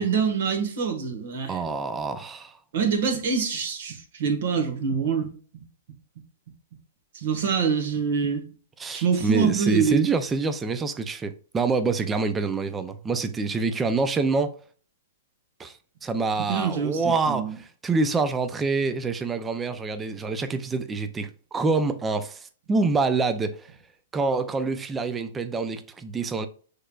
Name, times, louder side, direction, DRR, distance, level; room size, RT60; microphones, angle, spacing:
voice 1, 0.0-1.6 2.7-5.3 7.1-8.4 8.9-10.1 16.5-17.6, right 6 dB, 65° right, 1.4 m, -25 dB
voice 2, 1.5-2.6 8.8-14.6 15.6-15.7 16.0-23.7 24.1-26.5, right 4 dB, 15° right, 0.4 m, -26 dB
6.5 x 3.3 x 2.3 m
hypercardioid pair, 130°, 0 cm